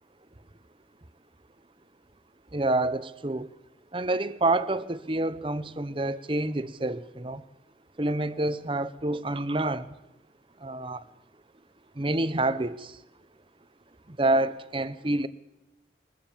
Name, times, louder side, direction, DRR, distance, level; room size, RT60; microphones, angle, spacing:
voice 1, 2.5-3.5 3.9-7.4 8.0-10.0 10.6-11.0 11.9-13.0 14.1-15.3, right 2 dB, 30° right, 0.9 m, -28 dB
22.5 x 20.5 x 7.4 m
head